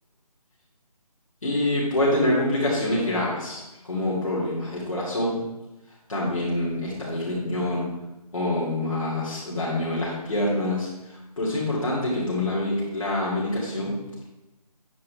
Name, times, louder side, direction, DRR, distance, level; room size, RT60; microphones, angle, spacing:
voice 1, 1.4-5.4 6.1-7.9 8.3-13.9, left 1 dB, 50° left, -7 dB, 2.9 m, -26 dB
9.4 x 8.1 x 3.5 m, 0.98 s
figure-of-eight pair, 180°, 21 cm